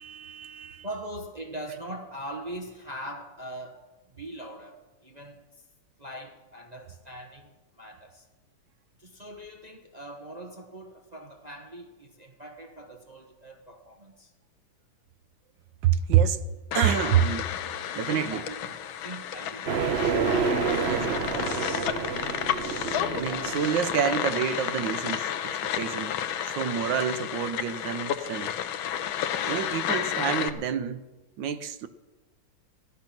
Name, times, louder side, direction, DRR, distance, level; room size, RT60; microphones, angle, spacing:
voice 1, 0.0-0.8 15.8-16.4 16.7-17.5 18.0-18.4 20.9-21.3 22.2-22.4 23.1-26.1 26.4-28.5 29.5-31.1 31.4-31.9, right 9 dB, 70° right, 1.4 m, -27 dB
voice 2, 0.8-5.4 6.0-8.3 9.0-14.3 17.9-19.8, right 1 dB, 25° right, 1.0 m, -41 dB
sound 1, 16.7-30.5, left 9 dB, 85° left, 1.6 m, -31 dB
sound 2, 19.7-24.2, right 5 dB, 45° right, 0.8 m, -29 dB
15.0 x 12.0 x 5.9 m
omnidirectional pair, 2.2 m